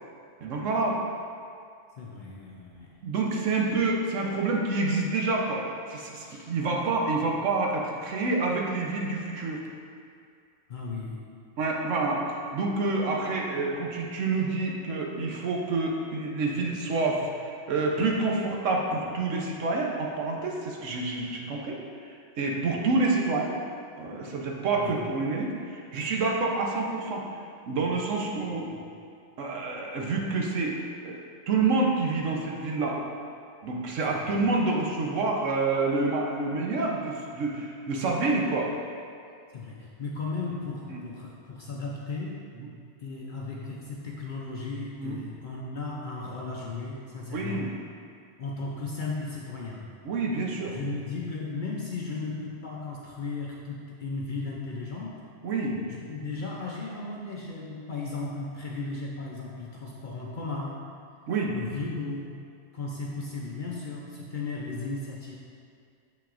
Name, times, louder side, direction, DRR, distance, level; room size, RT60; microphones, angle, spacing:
voice 1, 0.4-1.0 3.0-5.6 5.9-9.6 11.6-23.5 24.0-27.2 27.7-28.7 29.4-30.8 31.0-33.0 33.6-38.7 40.9-41.0 45.0-45.2 47.3-47.7 50.0-50.7 55.4-55.8 61.3-61.5, right 3 dB, 75° right, -1 dB, 1.1 m, -28 dB
voice 2, 2.0-3.1 6.3-6.5 10.7-11.5 24.7-25.0 28.4-28.8 34.1-34.4 39.5-42.5 43.0-47.7 48.4-49.9 50.7-55.2 55.9-61.0 61.5-62.5 62.7-65.4, left 3 dB, 55° left, -3 dB, 0.6 m, -36 dB
6.9 x 5.7 x 2.5 m, 2.3 s
omnidirectional pair, 1.3 m